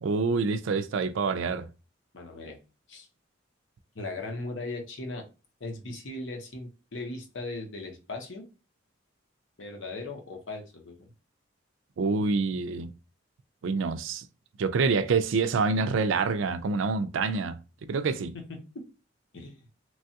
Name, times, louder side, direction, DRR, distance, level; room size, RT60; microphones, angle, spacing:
voice 1, 0.0-1.7 12.0-12.9 13.6-14.2 14.6-17.6 17.9-18.3, right 4 dB, 85° right, 0.4 m, -26 dB
voice 2, 2.1-2.6 2.9-3.1 3.9-5.2 5.6-8.4 9.6-11.0 18.3-18.9 19.3-19.7, left 2 dB, 75° left, 0.8 m, -38 dB
3.1 x 2.3 x 2.7 m
head